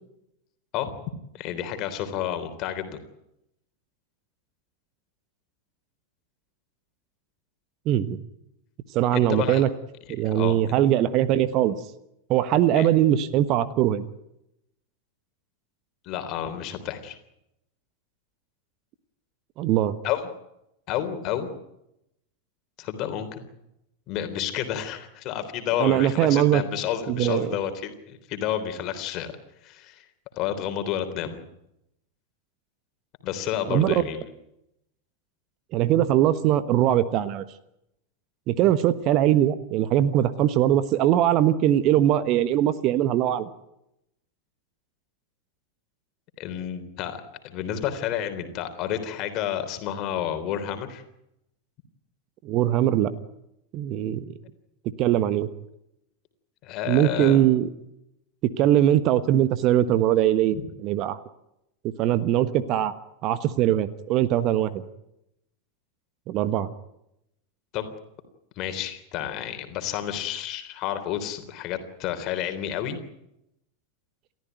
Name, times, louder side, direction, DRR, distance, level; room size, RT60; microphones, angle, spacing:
voice 1, 1.3-3.0 9.1-9.6 10.2-10.6 12.7-12.9 16.0-17.2 20.0-20.3 20.9-21.5 22.8-23.4 24.1-29.3 29.6-30.0 30.4-31.4 33.2-34.2 46.4-51.0 56.6-57.4 60.5-60.6 67.7-67.9 68.6-73.0, left 10 dB, 40° left, 9 dB, 3.5 m, -30 dB
voice 2, 7.8-8.2 8.9-9.7 10.1-11.8 12.3-14.0 19.6-19.9 25.8-26.6 27.1-27.5 33.7-34.0 35.7-37.4 38.5-43.5 52.4-53.1 53.7-54.3 55.0-55.5 56.9-57.7 58.4-60.6 60.8-61.2 62.0-62.9 63.2-64.8 66.3-66.7, right 12 dB, 40° right, 14 dB, 1.3 m, -21 dB
29.5 x 14.0 x 9.4 m, 0.83 s
figure-of-eight pair, 90°, 0 cm